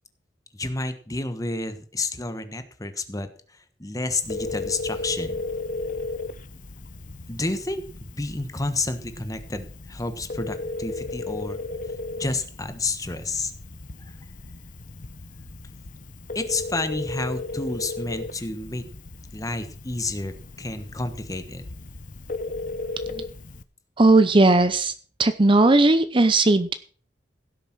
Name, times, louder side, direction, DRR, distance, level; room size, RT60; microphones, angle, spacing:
voice 1, 0.5-5.4 7.3-7.8 8.1-11.6 12.2-13.5 14.1-14.2 16.3-18.8 19.3-20.3 20.6-21.6, left 2 dB, 20° left, 9 dB, 1.3 m, -30 dB
Telephone, 4.2-23.6, left 3 dB, 45° left, 0.8 m, -35 dB
voice 2, 24.0-24.9 25.2-26.7, right 2 dB, 30° right, 12 dB, 0.6 m, -17 dB
16.5 x 6.7 x 6.0 m, 0.43 s
head